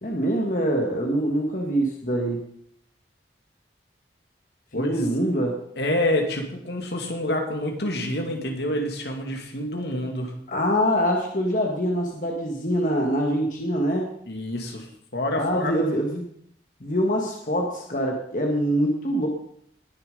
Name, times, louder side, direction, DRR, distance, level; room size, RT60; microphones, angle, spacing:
voice 1, 0.0-2.4 4.7-5.6 10.5-14.1 15.4-16.3 16.8-19.3, equal, 45° left, 0 dB, 1.7 m, -24 dB
voice 2, 4.7-5.1 5.8-10.3 14.3-15.7, left 1 dB, 65° left, 3 dB, 2.4 m, -27 dB
20.0 x 7.0 x 5.4 m, 0.67 s
head